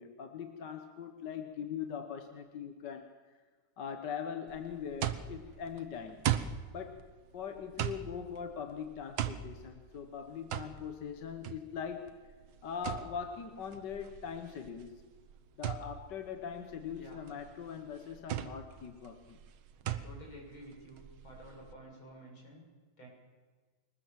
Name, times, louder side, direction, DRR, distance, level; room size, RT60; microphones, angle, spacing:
voice 1, 0.0-3.1 3.8-6.3 6.7-7.0 7.3-12.1 12.6-15.0 15.6-19.4, left 7 dB, 60° left, 6 dB, 1.8 m, -41 dB
sound 1, 4.5-21.7, right 11 dB, 85° right, 1.8 m, -40 dB
voice 2, 16.9-17.2 19.8-22.7 23.0-23.1, right 1 dB, 85° left, -1 dB, 7.7 m, -51 dB
24.0 x 20.0 x 7.5 m, 1.4 s
omnidirectional pair, 2.2 m